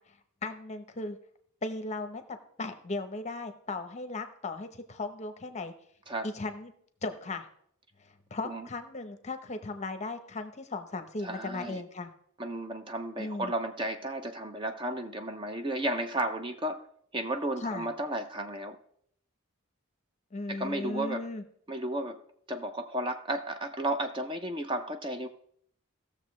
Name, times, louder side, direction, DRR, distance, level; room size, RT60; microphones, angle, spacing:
voice 1, 0.4-1.2 1.6-2.2 2.6-5.7 6.2-6.7 7.0-7.5 8.3-12.1 13.2-13.5 17.6-17.9 20.3-21.4, left 2 dB, 30° left, 8 dB, 0.8 m, -36 dB
voice 2, 11.2-11.8 12.4-16.9 17.1-18.8 20.5-21.3 21.7-22.2 22.5-25.3, right 1 dB, 20° right, 7 dB, 0.5 m, -33 dB
17.0 x 6.7 x 3.2 m, 0.66 s
head